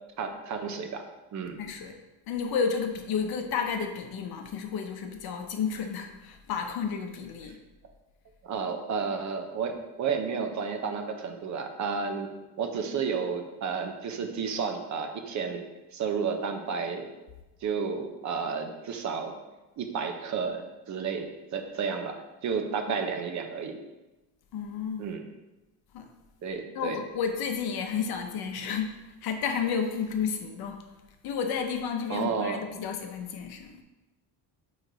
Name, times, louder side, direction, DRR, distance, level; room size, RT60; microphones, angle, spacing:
voice 1, 0.2-1.6 8.4-12.3 12.6-17.1 17.6-19.4 19.8-23.8 25.0-25.2 26.4-27.0 32.1-32.7, right 5 dB, 40° right, 5 dB, 0.7 m, -32 dB
voice 2, 1.6-2.0 2.3-7.6 24.5-25.1 25.9-26.1 26.7-29.0 29.2-30.8 31.2-33.8, left 6 dB, 55° left, 5 dB, 0.8 m, -31 dB
8.9 x 3.2 x 3.9 m, 1.1 s
cardioid pair, 165°, 43 cm